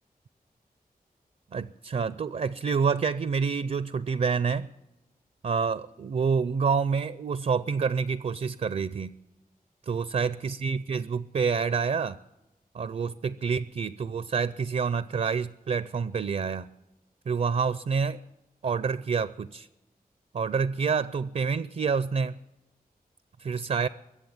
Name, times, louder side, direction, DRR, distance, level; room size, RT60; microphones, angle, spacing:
voice 1, 1.5-4.7 5.4-9.1 9.9-12.2 12.7-16.7 17.3-18.2 18.6-19.7 20.3-22.3 23.4-23.9, right 5 dB, 50° right, 16 dB, 0.4 m, -28 dB
22.5 x 7.6 x 7.3 m, 0.98 s
wide cardioid pair, 65°, 16 cm